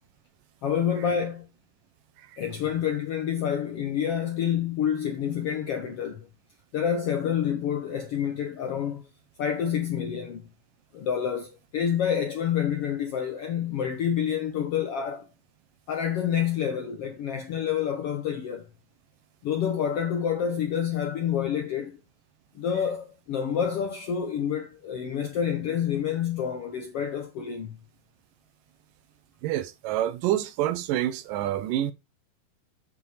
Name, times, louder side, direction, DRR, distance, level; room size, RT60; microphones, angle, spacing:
voice 1, 0.6-1.5 2.4-6.3 6.7-9.0 9.4-10.5 10.9-15.3 15.9-18.7 19.4-22.0 22.5-27.8, left 8 dB, 70° left, 1.4 m, -28 dB
voice 2, 29.4-31.9, right 12 dB, 80° right, 2.3 m, -27 dB
8.6 x 5.4 x 4.8 m
omnidirectional pair, 4.0 m